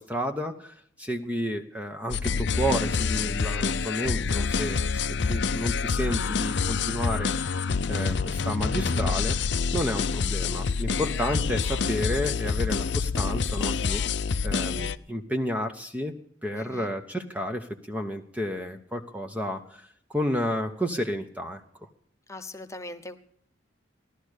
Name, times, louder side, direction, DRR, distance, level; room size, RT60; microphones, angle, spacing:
voice 1, 0.0-7.4 7.9-9.4 9.7-16.1 16.4-21.6, equal, 5° right, 5 dB, 0.9 m, -31 dB
sound 1, 2.1-15.0, left 5 dB, 60° left, 0.6 m, -27 dB
voice 2, 16.5-16.9 22.3-23.2, left 1 dB, 15° left, 7 dB, 1.0 m, -40 dB
16.0 x 12.0 x 6.5 m, 0.66 s
head